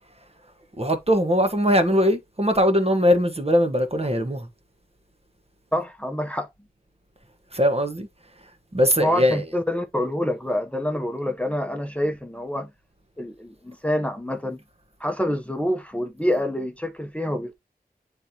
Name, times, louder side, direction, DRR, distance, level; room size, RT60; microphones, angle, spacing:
voice 1, 0.8-4.5 7.5-8.1 8.7-9.6, equal, 40° right, 1.4 m, -21 dB
voice 2, 5.7-6.5 9.0-12.7 13.2-14.6 15.0-17.5, left 1 dB, 10° left, 0.9 m, -26 dB
9.7 x 3.5 x 2.9 m
wide cardioid pair, 45°, 16 cm